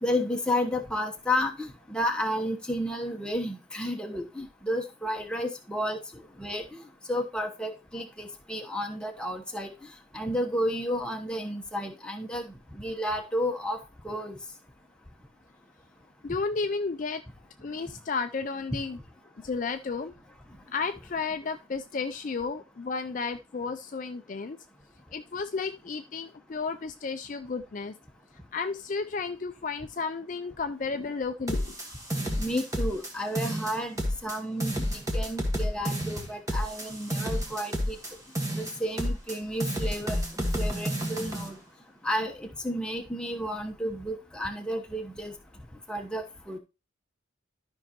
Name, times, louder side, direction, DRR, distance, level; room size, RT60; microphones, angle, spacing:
voice 1, 0.0-13.8 14.0-14.4 32.4-38.0 38.5-40.2 40.6-41.6 42.0-45.3 45.9-46.6, equal, 5° left, 3 dB, 1.0 m, -32 dB
voice 2, 16.2-17.2 17.6-19.0 19.4-20.1 20.7-24.6 25.1-27.9 28.5-31.7, left 4 dB, 40° left, 8 dB, 0.4 m, -32 dB
sound 1, 31.5-33.1 33.4-34.4 34.6-38.1 38.4-39.4 39.6-41.5, equal, 15° right, 1.5 m, -30 dB
12.5 x 5.4 x 3.0 m, 0.28 s
head